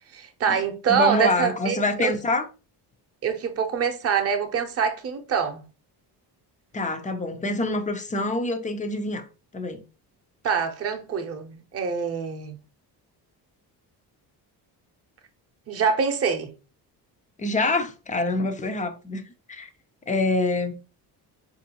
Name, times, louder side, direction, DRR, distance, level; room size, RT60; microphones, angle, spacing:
voice 1, 0.1-2.1 3.2-5.6 10.4-12.6 15.7-16.5, right 6 dB, 35° right, 0.7 m, -25 dB
voice 2, 0.9-2.5 6.7-9.3 9.5-9.8 17.4-19.2 19.5-19.7 20.1-20.8, left 2 dB, 20° left, 0.5 m, -26 dB
4.4 x 2.6 x 2.8 m
cardioid pair, 130°, 41 cm